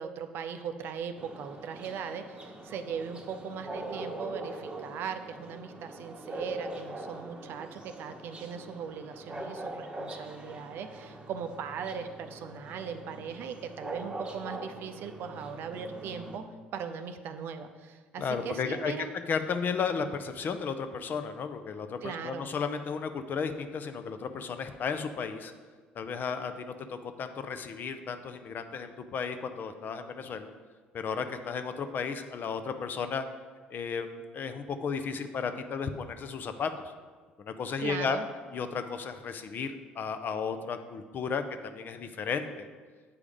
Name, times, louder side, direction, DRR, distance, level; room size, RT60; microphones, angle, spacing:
voice 1, 0.0-16.4 16.7-19.1 22.0-22.5 37.8-38.3, right 6 dB, 50° right, 8 dB, 0.5 m, -39 dB
sound 1, 1.2-16.4, right 1 dB, 20° right, 1.0 m, -43 dB
voice 2, 18.2-18.9 19.3-25.5 25.9-30.5 30.9-33.3 33.7-36.7 37.4-38.2 38.5-42.7, left 6 dB, 40° left, 9 dB, 0.6 m, -34 dB
8.6 x 4.8 x 5.2 m, 1.5 s
figure-of-eight pair, 55°, 5 cm